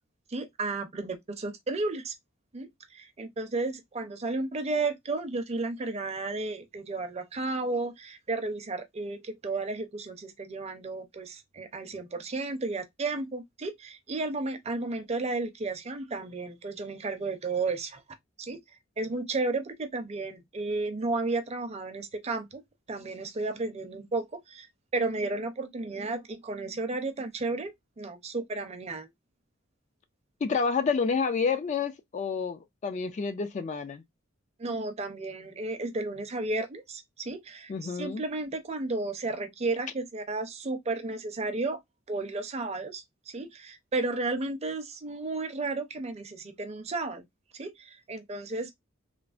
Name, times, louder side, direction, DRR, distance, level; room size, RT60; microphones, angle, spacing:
voice 1, 0.3-2.1 2.5-18.0 18.4-18.6 19.0-22.6 22.9-27.7 28.0-29.1 34.6-41.8 42.1-47.2 47.5-48.7, right 3 dB, 30° right, 0.5 m, -33 dB
voice 2, 30.4-34.0 37.7-38.2, left 5 dB, 35° left, 0.3 m, -29 dB
3.2 x 2.0 x 2.4 m
head